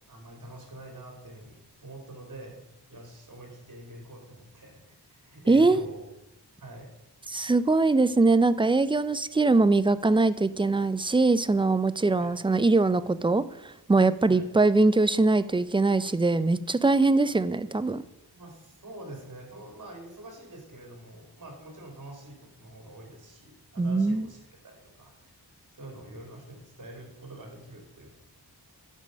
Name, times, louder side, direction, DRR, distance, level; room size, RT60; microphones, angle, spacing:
voice 1, 0.1-2.6 2.9-4.8 5.1-6.0 6.6-6.9 12.2-12.3 14.3-14.5 18.3-25.3 25.7-28.1, right 1 dB, 45° right, 1 dB, 2.7 m, -46 dB
voice 2, 5.5-5.9 7.3-18.0 23.8-24.3, right 3 dB, 15° right, 14 dB, 0.3 m, -22 dB
10.5 x 5.6 x 5.1 m, 0.86 s
wide cardioid pair, 105°, 41 cm